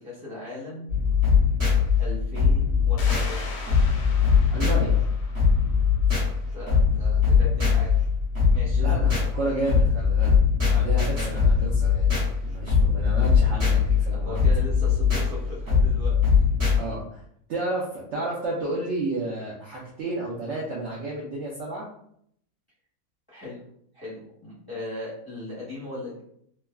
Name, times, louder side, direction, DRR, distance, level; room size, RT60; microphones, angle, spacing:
voice 1, 0.0-0.9 2.0-3.5 6.5-7.9 8.5-8.8 10.9-11.1 13.4-13.5 14.1-16.5 23.3-23.6 23.9-26.2, left 2 dB, 20° left, -10 dB, 0.6 m, -38 dB
sound 1, 0.9-16.8, left 6 dB, 45° right, 1.2 m, -21 dB
sound 2, 3.0-6.3, left 3 dB, 85° left, 1.2 m, -40 dB
voice 2, 4.5-5.0 8.7-10.4 10.6-12.1 12.4-14.4 16.8-17.2 17.5-21.9, right 2 dB, 65° right, -5 dB, 0.7 m, -31 dB
3.2 x 2.2 x 2.2 m, 0.69 s
omnidirectional pair, 1.7 m